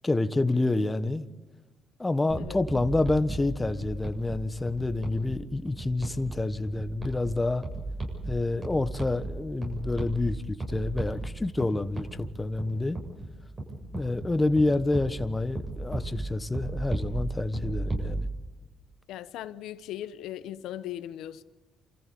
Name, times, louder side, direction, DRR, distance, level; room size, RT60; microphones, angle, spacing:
voice 1, 0.0-1.2 2.0-7.6 8.3-13.0 13.9-18.3, left 2 dB, 15° left, 1.3 m, -28 dB
sound 1, 2.3-18.1, right 2 dB, 40° right, 7.6 m, -36 dB
voice 2, 19.1-21.4, left 12 dB, 90° left, 1.0 m, -38 dB
28.0 x 14.5 x 8.6 m
cardioid pair, 90°, 0 cm